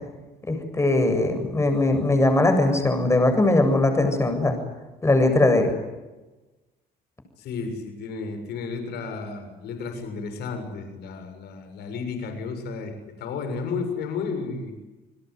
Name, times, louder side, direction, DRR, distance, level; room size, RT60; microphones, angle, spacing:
voice 1, 0.5-4.6 5.0-5.7, left 2 dB, 15° left, 6 dB, 7.5 m, -20 dB
voice 2, 7.4-14.7, left 4 dB, 75° left, 7 dB, 7.0 m, -32 dB
30.0 x 20.5 x 9.6 m, 1.1 s
cardioid pair, 110°, 17 cm